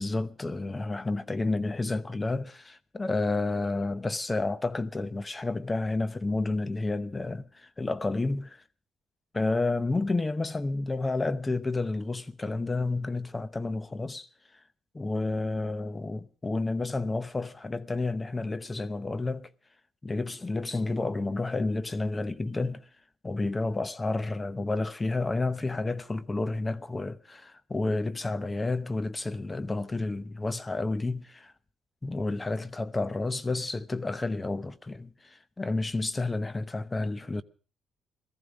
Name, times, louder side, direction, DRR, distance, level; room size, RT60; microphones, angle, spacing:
voice 1, 0.0-8.6 9.3-14.3 14.9-19.5 20.0-22.8 23.2-31.5 32.0-37.4, left 3 dB, 20° left, 0.8 m, -30 dB
18.0 x 14.5 x 5.1 m
cardioid pair, 90°, 0 cm